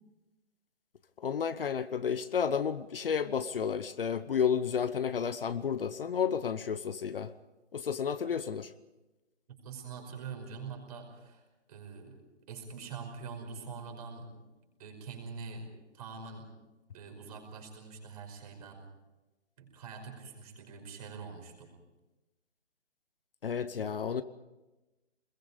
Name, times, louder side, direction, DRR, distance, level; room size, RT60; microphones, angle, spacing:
voice 1, 1.2-7.3 7.7-8.7 23.4-24.2, left 7 dB, 50° left, 13 dB, 0.9 m, -31 dB
voice 2, 9.5-14.3 14.8-16.5 16.9-18.9 19.6-21.7, right 5 dB, 35° right, 2 dB, 5.4 m, -44 dB
27.0 x 21.5 x 5.1 m, 1.1 s
hypercardioid pair, 160°, 36 cm